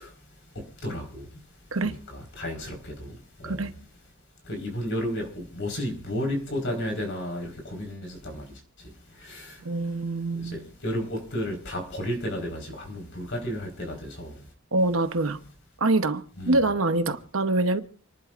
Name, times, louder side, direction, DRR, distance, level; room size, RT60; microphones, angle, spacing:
voice 1, 0.0-3.7 4.4-9.8 10.3-14.5 16.4-16.6, equal, 60° left, 4.8 m, -33 dB
voice 2, 9.6-10.6 14.7-15.4 15.8-17.8, right 2 dB, 75° right, 1.0 m, -25 dB
29.0 x 11.0 x 2.6 m
head